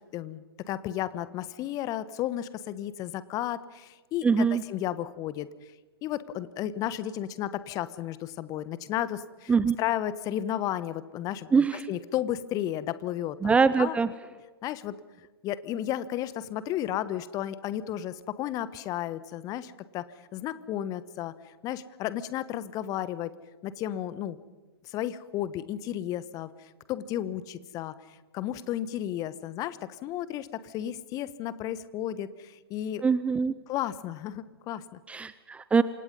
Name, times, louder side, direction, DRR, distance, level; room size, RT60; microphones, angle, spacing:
voice 1, 0.1-5.5 6.0-11.5 11.9-14.0 14.6-14.9 15.4-20.1 20.3-21.3 21.6-23.3 23.6-24.4 24.8-27.9 28.3-33.0 33.7-35.0, left 12 dB, 30° left, 15 dB, 1.3 m, -33 dB
voice 2, 4.2-4.6 9.5-9.8 11.5-11.8 13.4-14.1 33.0-33.5 35.1-35.8, right 5 dB, 10° right, 15 dB, 0.7 m, -23 dB
28.0 x 25.5 x 5.5 m, 1.2 s
figure-of-eight pair, 110°, 13 cm